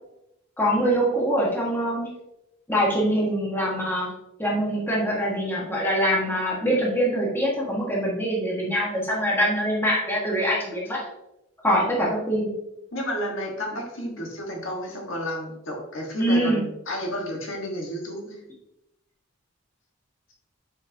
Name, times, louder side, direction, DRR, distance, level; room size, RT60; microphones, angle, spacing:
voice 1, 0.6-2.1 2.7-4.1 4.4-11.0 11.6-12.5 16.2-16.6, equal, 10° left, -4 dB, 1.4 m, -24 dB
voice 2, 12.9-18.4, equal, 65° left, 0 dB, 1.5 m, -32 dB
8.0 x 5.1 x 2.8 m, 0.88 s
head